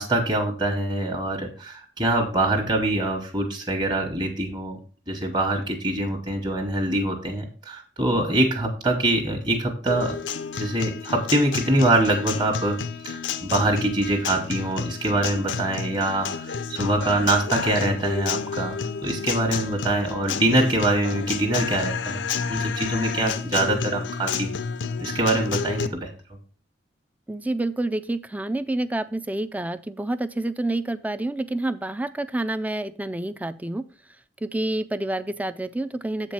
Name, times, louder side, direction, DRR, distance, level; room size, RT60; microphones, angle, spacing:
voice 1, 0.0-4.8 5.1-10.2 10.5-12.8 13.0-22.2 22.5-24.5 25.0-26.1, right 1 dB, 25° right, 1 dB, 1.2 m, -24 dB
Guitar, 9.9-25.9, left 6 dB, 90° left, 0.6 m, -30 dB
voice 2, 27.3-33.8 34.4-36.3, right 2 dB, 10° right, 13 dB, 0.4 m, -28 dB
7.7 x 4.5 x 5.8 m, 0.39 s
head